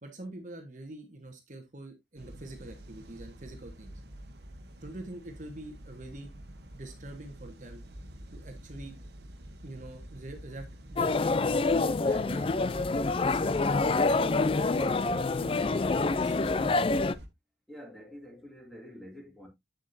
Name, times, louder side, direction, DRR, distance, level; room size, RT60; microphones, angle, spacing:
voice 1, 0.0-3.9 4.8-6.3 6.7-7.8 8.3-8.9 9.6-13.7 14.0-16.5, right 2 dB, 45° right, 1.3 m, -45 dB
sound 1, 2.2-17.3, equal, 60° right, 1.3 m, -47 dB
sound 2, 11.0-17.1, left 3 dB, 30° left, 0.4 m, -26 dB
voice 2, 17.7-19.5, equal, ahead, 2.5 m, -47 dB
8.4 x 7.3 x 2.6 m
head